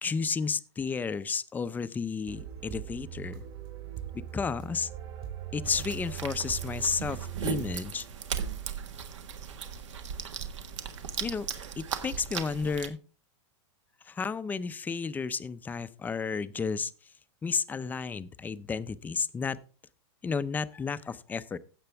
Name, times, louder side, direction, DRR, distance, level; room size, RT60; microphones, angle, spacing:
voice 1, 0.0-3.4 4.1-4.9 5.5-8.0 11.2-11.5 11.8-13.0 14.1-16.9 17.4-19.6 20.2-21.6, left 5 dB, 10° left, 14 dB, 0.5 m, -32 dB
sound 1, 2.3-8.3, right 11 dB, 55° right, 3.4 m, -41 dB
sound 2, 5.6-12.9, right 7 dB, 85° right, 1.5 m, -37 dB
16.0 x 6.8 x 3.4 m, 0.36 s
supercardioid pair, 140°, 15 cm